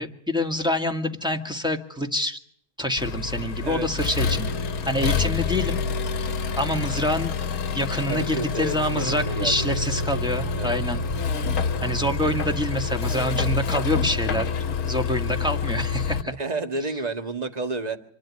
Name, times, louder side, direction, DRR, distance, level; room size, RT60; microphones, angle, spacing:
voice 1, 0.0-2.4 2.8-5.8 6.2-6.3 6.6-7.3 7.7-11.0 11.5-14.5 14.8-16.3, left 1 dB, 5° right, 3 dB, 1.9 m, -26 dB
Accelerating revving vroom, 3.0-16.2, left 5 dB, 75° left, 1.5 m, -27 dB
voice 2, 8.1-9.8 10.6-10.8 16.2-18.0, right 2 dB, 30° right, 7 dB, 1.7 m, -31 dB
26.0 x 12.0 x 9.9 m, 0.67 s
omnidirectional pair, 1.6 m